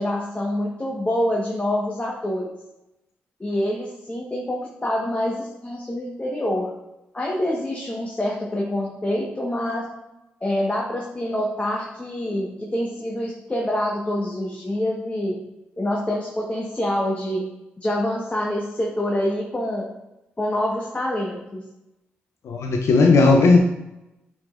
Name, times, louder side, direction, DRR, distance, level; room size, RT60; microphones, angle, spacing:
voice 1, 0.0-2.5 3.4-6.7 7.1-9.8 10.4-15.3 15.8-17.5 17.8-19.9 20.4-21.6, left 1 dB, 25° left, -2 dB, 1.4 m, -26 dB
voice 2, 22.4-23.6, left 3 dB, 65° left, 2 dB, 0.6 m, -15 dB
8.6 x 4.9 x 2.6 m, 0.93 s
hypercardioid pair, 40°, 5 cm